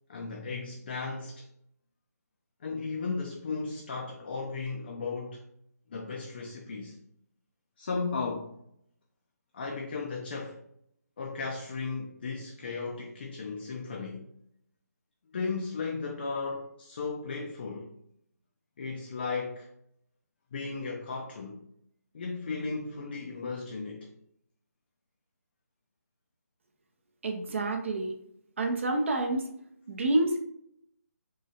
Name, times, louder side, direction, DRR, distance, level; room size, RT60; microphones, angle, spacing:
voice 1, 0.1-1.5 2.6-5.4 5.9-7.0 7.8-8.6 9.5-10.6 11.2-14.3 15.3-17.9 18.8-19.7 20.5-21.6 22.1-24.1, left 4 dB, 35° left, 0.4 m, -35 dB
voice 2, 27.2-28.1 28.6-29.5 29.9-30.4, right 2 dB, 45° right, 0.5 m, -28 dB
3.8 x 3.1 x 2.7 m
figure-of-eight pair, 150°, 9 cm